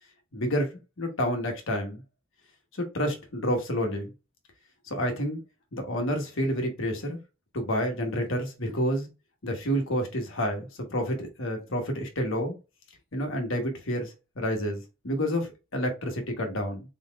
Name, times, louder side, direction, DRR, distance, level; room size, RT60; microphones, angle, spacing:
voice 1, 0.3-2.0 2.8-4.1 4.9-5.4 5.7-7.2 7.5-9.1 9.4-12.5 13.1-16.8, equal, 60° left, 1.2 m, -29 dB
4.1 x 4.0 x 2.4 m
head